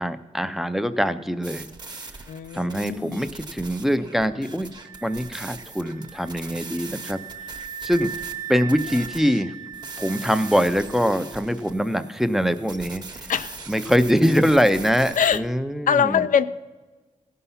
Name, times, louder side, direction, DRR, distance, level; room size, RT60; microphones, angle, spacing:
voice 1, 0.0-1.7 2.5-4.7 5.0-7.2 7.8-8.1 8.5-9.5 10.0-13.0 13.7-16.2, equal, ahead, 11 dB, 0.4 m, -23 dB
sound 1, 1.4-9.4 9.7-15.4, right 3 dB, 30° right, 0.9 m, -41 dB
voice 2, 2.3-3.2 13.3-13.6 15.2-15.4 15.9-16.4, left 7 dB, 90° left, 12 dB, 0.4 m, -22 dB
sound 2, 4.8-11.6, right 8 dB, 75° right, 0.7 m, -39 dB
16.5 x 5.6 x 5.6 m, 1.3 s
wide cardioid pair, 145°, 13 cm